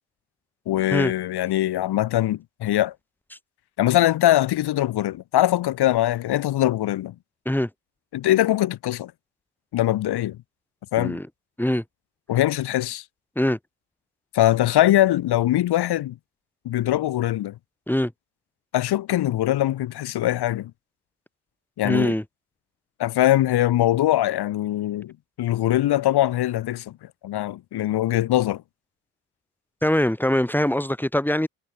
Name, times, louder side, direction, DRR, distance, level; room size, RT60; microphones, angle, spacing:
voice 1, 0.7-2.9 3.8-7.2 8.1-9.1 9.7-10.4 10.9-11.2 12.3-13.0 14.3-16.2 16.6-17.6 18.7-20.7 21.8-22.1 23.0-27.0 27.2-28.6, left 14 dB, 65° left, 5.6 m, -22 dB
voice 2, 21.8-22.2 29.8-31.5, left 1 dB, 5° left, 4.8 m, -22 dB
hypercardioid pair, 55°, 42 cm